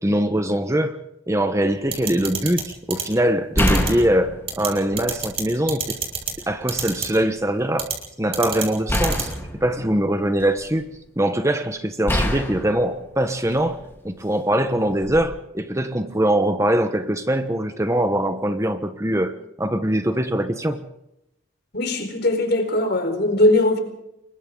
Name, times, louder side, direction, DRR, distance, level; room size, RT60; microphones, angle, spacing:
voice 1, 0.0-1.0 1.3-6.0 6.5-7.9 8.2-9.3 9.6-10.9 11.2-13.8 14.0-20.8, right 1 dB, 15° right, 1.2 m, -22 dB
sound 1, 1.7-2.0 3.5-5.4 5.9-6.8 8.9-10.8 12.1-13.9 15.0-15.2, equal, 10° left, 3.7 m, -26 dB
sound 2, 1.9-2.6 2.9-3.0 3.6-3.9 4.5-4.7 5.0-5.4 5.7-6.3 6.7-7.1 7.8-7.9 8.3-8.6 8.9-9.2, right 7 dB, 30° right, 6.3 m, -26 dB
voice 2, 21.7-23.8, left 1 dB, 50° left, 4.5 m, -20 dB
29.5 x 23.0 x 4.0 m
head